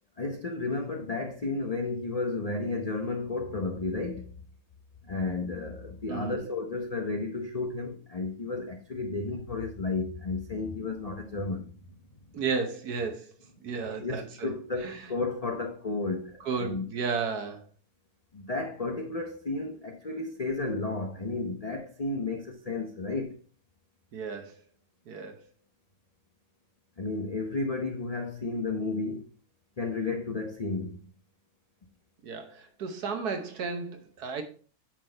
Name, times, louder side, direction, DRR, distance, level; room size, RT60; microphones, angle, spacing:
voice 1, 0.2-4.3 5.0-11.7 13.9-16.9 18.3-23.4 27.0-29.2 29.8-31.0, left 3 dB, 75° left, 0.3 m, -32 dB
voice 2, 6.1-6.4 12.3-13.3 13.6-14.5 14.8-15.1 16.4-17.7 24.1-24.5 25.1-25.5 32.2-34.4, right 5 dB, 60° right, 1.6 m, -33 dB
9.0 x 4.1 x 4.4 m
omnidirectional pair, 1.9 m